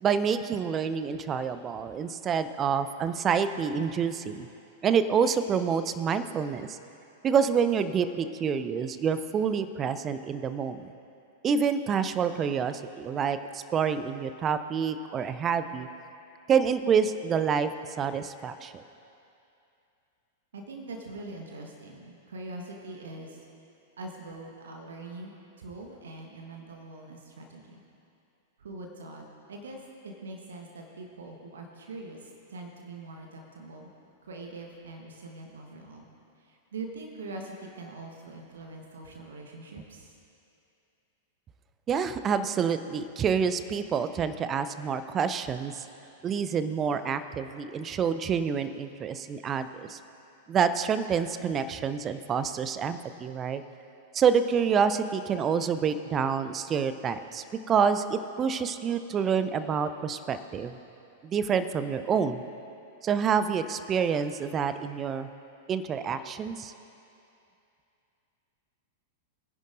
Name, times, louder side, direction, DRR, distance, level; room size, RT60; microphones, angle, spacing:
voice 1, 0.0-4.5 4.8-6.8 7.2-10.9 11.4-15.9 16.5-17.7 18.0-18.8 41.9-45.9 46.2-50.0 50.5-53.6 54.1-60.7 61.2-62.4 63.0-65.3 65.7-66.7, right 6 dB, 25° right, 11 dB, 0.5 m, -27 dB
voice 2, 20.5-23.4 24.0-27.8 28.6-33.9 34.2-36.1 36.4-40.2, right 2 dB, 65° right, 1 dB, 1.3 m, -43 dB
22.5 x 10.5 x 2.6 m, 2.7 s
figure-of-eight pair, 95°, 0 cm